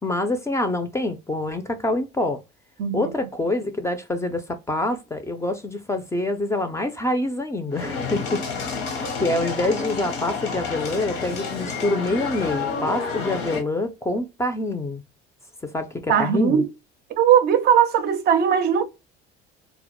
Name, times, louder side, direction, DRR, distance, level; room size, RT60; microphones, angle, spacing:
voice 1, 0.0-2.4 2.9-8.6 9.2-15.0 15.6-16.6, left 2 dB, 15° left, 0.4 m, -26 dB
voice 2, 2.8-3.1 16.1-16.7 17.1-18.8, right 8 dB, 50° right, 0.5 m, -19 dB
sound 1, 7.7-13.6, left 4 dB, 85° left, 0.8 m, -29 dB
2.1 x 2.0 x 2.9 m
supercardioid pair, 105°, 21 cm